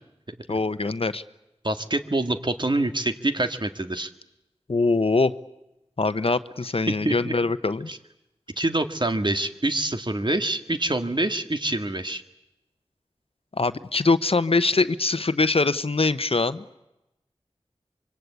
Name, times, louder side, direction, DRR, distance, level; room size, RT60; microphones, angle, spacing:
voice 1, 0.5-1.2 4.7-5.3 6.0-7.9 13.6-16.6, left 3 dB, 65° left, 13 dB, 0.9 m, -23 dB
voice 2, 1.6-4.1 6.9-7.3 7.9-8.0 8.6-12.2, right 2 dB, 45° right, 8 dB, 1.8 m, -26 dB
25.5 x 24.0 x 8.3 m, 0.93 s
wide cardioid pair, 40°, 11 cm